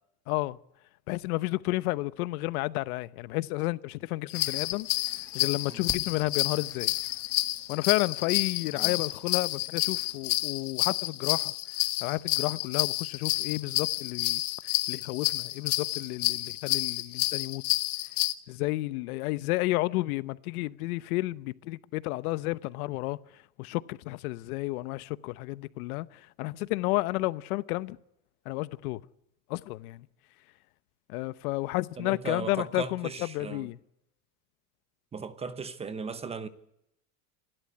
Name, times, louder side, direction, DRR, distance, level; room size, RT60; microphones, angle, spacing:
voice 1, 0.3-0.6 1.1-6.9 7.7-11.5 12.0-17.6 18.5-28.0 28.4-29.0 29.5-30.1 31.1-33.8, left 20 dB, 80° left, 1.0 m, -31 dB
sound 1, 4.3-18.3, left 19 dB, 50° left, 1.3 m, -30 dB
sound 2, 4.3-10.6, left 3 dB, 5° left, 1.3 m, -51 dB
voice 2, 32.0-33.7 35.1-36.5, right 5 dB, 15° right, 0.8 m, -37 dB
28.0 x 12.5 x 9.6 m
cardioid pair, 165°, 43 cm